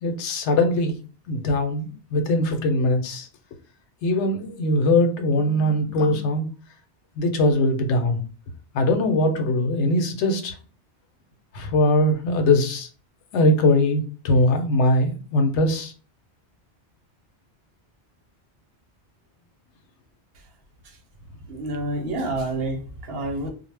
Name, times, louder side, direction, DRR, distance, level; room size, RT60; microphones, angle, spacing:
voice 1, 0.0-1.0 1.3-3.3 4.0-6.5 7.2-8.2 8.7-10.5 11.5-12.9 13.3-15.9, left 1 dB, 80° left, 5 dB, 0.9 m, -21 dB
voice 2, 21.5-23.5, right 2 dB, 65° right, 3 dB, 0.8 m, -28 dB
2.1 x 2.0 x 3.2 m, 0.37 s
omnidirectional pair, 1.1 m